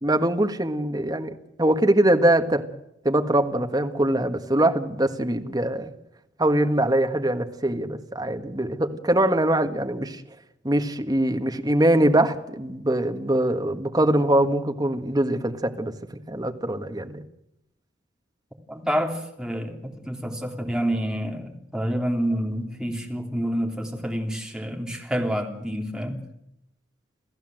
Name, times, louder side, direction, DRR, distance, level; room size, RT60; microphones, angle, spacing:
voice 1, 0.0-2.6 3.0-5.9 6.4-10.2 10.6-15.9 16.3-17.2, right 1 dB, 20° right, 6 dB, 1.7 m, -22 dB
voice 2, 18.7-26.2, equal, 5° right, 2 dB, 3.2 m, -28 dB
28.5 x 15.5 x 7.8 m, 0.83 s
head